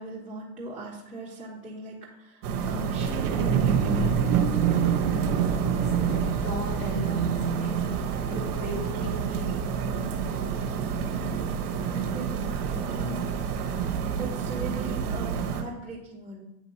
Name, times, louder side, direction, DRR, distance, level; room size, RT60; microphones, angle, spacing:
voice 1, 0.0-4.1 11.1-13.4 13.8-16.4, right 2 dB, 5° right, -10 dB, 1.2 m, -40 dB
sound 1, 2.4-15.6, right 6 dB, 85° right, 1.0 m, -29 dB
sound 2, 3.0-10.4 11.0-11.1, right 8 dB, 60° right, 0.8 m, -30 dB
voice 2, 5.6-8.0 8.3-9.7, left 1 dB, 50° left, -1 dB, 2.2 m, -37 dB
9.0 x 3.0 x 4.1 m, 0.97 s
supercardioid pair, 125°, 44 cm